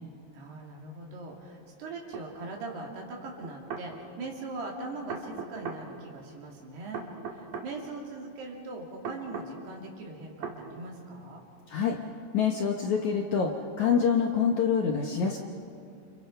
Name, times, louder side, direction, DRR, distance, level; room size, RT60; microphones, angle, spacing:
voice 1, 0.3-11.5, right 2 dB, 70° right, -1 dB, 5.1 m, -41 dB
sound 1, 2.1-2.3 3.4-3.9 5.1-5.8 6.9-7.7 9.1-9.5 10.4-10.6, right 6 dB, 55° right, 3.3 m, -37 dB
voice 2, 11.7-12.0 12.3-15.4, left 6 dB, 65° left, 1 dB, 2.0 m, -26 dB
29.5 x 27.5 x 5.7 m, 2.4 s
omnidirectional pair, 4.8 m